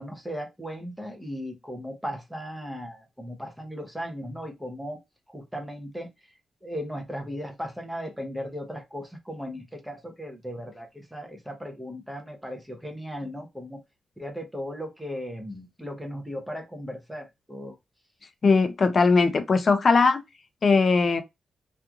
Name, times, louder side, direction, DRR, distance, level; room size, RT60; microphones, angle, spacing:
voice 1, 0.0-5.0 5.3-6.1 6.6-13.8 14.2-17.7, equal, 5° right, 0.7 m, -37 dB
voice 2, 18.4-20.2 20.6-21.2, left 4 dB, 40° left, 0.5 m, -20 dB
2.9 x 2.5 x 2.3 m
wide cardioid pair, 140°, 0 cm